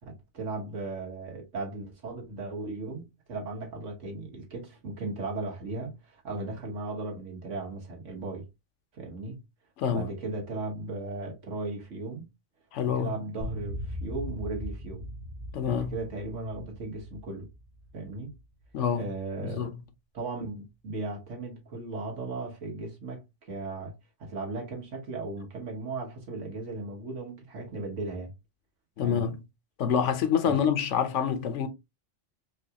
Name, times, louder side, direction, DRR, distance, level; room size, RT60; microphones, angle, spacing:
voice 1, 0.0-8.4 8.9-9.4 9.9-12.2 12.8-15.1 15.6-17.5 17.9-18.3 18.9-19.7 20.1-28.3 29.0-29.3 30.4-30.6, right 2 dB, 85° right, 1.7 m, -37 dB
voice 2, 9.8-10.1 12.7-13.2 15.5-15.9 18.7-19.0 19.4-19.7 29.0-29.4 29.8-31.7, left 7 dB, 85° left, 1.1 m, -27 dB
sound 1, 13.4-18.8, equal, 40° right, 0.9 m, -39 dB
4.6 x 2.4 x 2.8 m
omnidirectional pair, 1.2 m